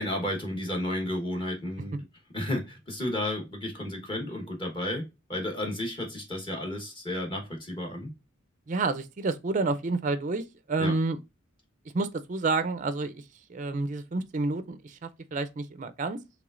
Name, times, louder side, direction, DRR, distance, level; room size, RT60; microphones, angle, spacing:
voice 1, 0.0-2.0 2.3-5.0 5.3-8.1 10.8-10.9, left 1 dB, 25° left, 1.0 m, -32 dB
voice 2, 8.7-11.2 11.9-13.2 13.5-16.2, right 3 dB, 40° right, 0.4 m, -29 dB
4.9 x 3.3 x 2.4 m
head